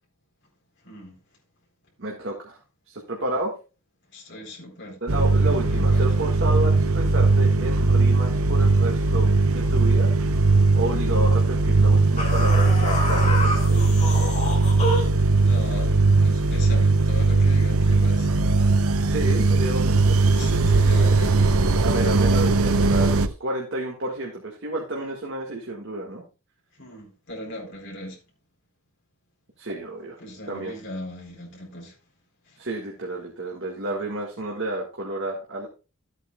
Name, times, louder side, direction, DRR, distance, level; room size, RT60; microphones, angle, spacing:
voice 1, 0.8-1.2 4.1-5.0 5.6-6.3 14.6-14.7 15.4-18.3 20.3-21.4 26.7-28.2 30.2-32.0 32.4-32.6, left 1 dB, 55° left, 4.0 m, -39 dB
voice 2, 2.0-2.6 2.9-3.5 5.0-10.1 10.7-14.1 19.1-20.2 21.0-21.2 21.8-26.2 29.6-30.2 30.5-30.8 32.6-35.7, right 1 dB, 60° right, 1.8 m, -31 dB
sound 1, 5.1-23.3, right 3 dB, 85° right, 0.7 m, -19 dB
sound 2, 12.2-15.2, left 1 dB, 35° left, 3.2 m, -28 dB
13.5 x 8.4 x 2.3 m
head